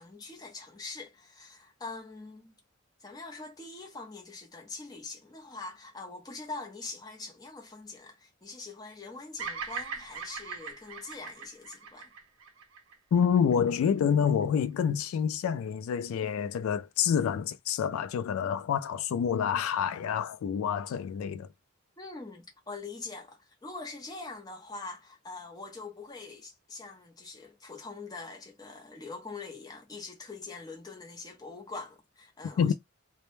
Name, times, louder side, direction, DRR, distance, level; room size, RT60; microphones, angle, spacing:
voice 1, 0.0-2.5 3.0-12.1 22.0-32.7, left 3 dB, 20° left, 0.6 m, -43 dB
Bird vocalization bird call bird song, 9.4-13.7, right 5 dB, 70° right, 0.5 m, -40 dB
voice 2, 13.1-21.5 32.6-32.7, left 7 dB, 90° left, 0.3 m, -27 dB
2.1 x 2.1 x 3.0 m
head